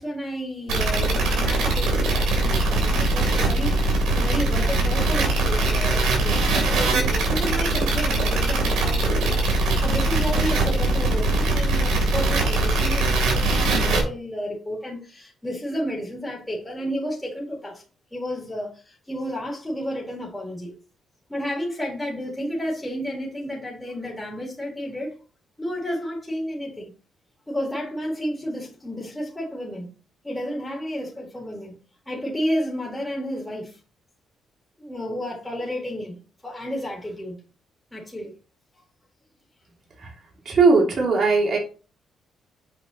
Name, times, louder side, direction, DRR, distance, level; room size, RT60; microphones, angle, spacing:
voice 1, 0.0-17.8 18.1-20.7 21.3-25.1 25.6-26.9 27.5-29.9 30.2-31.8 32.1-33.8 34.8-37.4 37.9-38.3, equal, 10° left, 3.5 m, -31 dB
sound 1, 0.7-14.0, right 2 dB, 80° right, 3.5 m, -21 dB
voice 2, 40.4-41.6, right 4 dB, 50° right, 3.1 m, -18 dB
8.1 x 5.3 x 3.0 m
cardioid pair, 90°, 0 cm